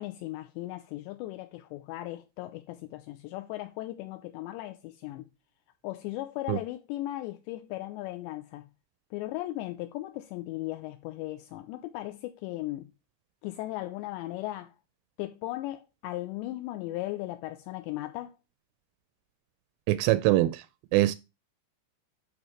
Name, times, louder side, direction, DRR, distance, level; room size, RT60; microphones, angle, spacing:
voice 1, 0.0-5.3 5.8-8.7 9.1-12.9 13.4-14.7 15.2-18.3, left 16 dB, 85° left, 2.7 m, -37 dB
voice 2, 19.9-20.6 20.9-21.2, right 16 dB, 85° right, 3.0 m, -23 dB
12.0 x 5.0 x 3.2 m
omnidirectional pair, 5.4 m